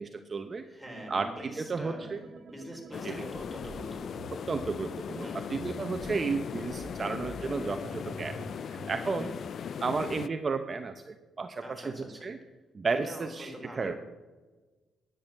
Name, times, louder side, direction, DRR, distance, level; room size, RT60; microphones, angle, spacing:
voice 1, 0.0-0.6 1.1-2.2 3.0-3.2 4.5-8.4 8.7-9.3 9.8-11.9 12.2-12.4 12.7-13.9, right 4 dB, 35° right, 8 dB, 0.7 m, -33 dB
voice 2, 0.6-2.1 2.5-4.3 5.2-5.8 9.1-9.3 11.6-12.3 13.0-14.0, equal, ahead, -1 dB, 4.2 m, -44 dB
sound 1, 0.9-4.6 5.4-9.0, right 3 dB, 60° right, 1.8 m, -48 dB
sound 2, 2.9-10.3, left 7 dB, 55° left, 0.4 m, -38 dB
10.5 x 8.9 x 6.6 m, 1.3 s
cardioid pair, 90°, 0 cm